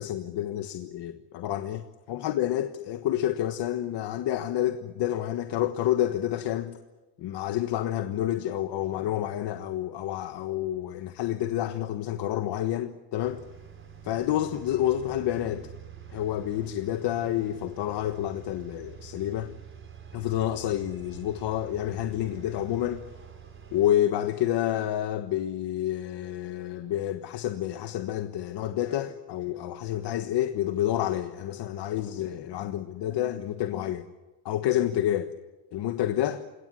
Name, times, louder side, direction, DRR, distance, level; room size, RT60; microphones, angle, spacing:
voice 1, 0.0-6.8 7.2-13.4 14.0-15.7 16.1-19.5 20.1-23.0 23.7-34.0 34.4-35.3 35.7-36.4, left 12 dB, 65° left, 1.4 m, -29 dB
sound 1, 13.2-23.9, right 8 dB, 25° right, 4.4 m, -46 dB
29.0 x 17.5 x 10.0 m
cardioid pair, 165°, 45 cm